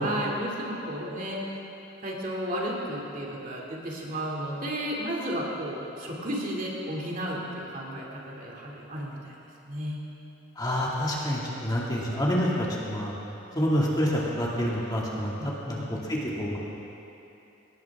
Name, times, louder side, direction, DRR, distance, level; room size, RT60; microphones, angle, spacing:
voice 1, 0.0-1.6 2.0-9.3 9.6-10.0 15.3-15.9, equal, 40° right, -3 dB, 2.6 m, -33 dB
voice 2, 10.6-13.1 13.5-16.6, equal, 20° left, -5 dB, 2.2 m, -28 dB
21.0 x 18.5 x 3.6 m, 2.9 s
head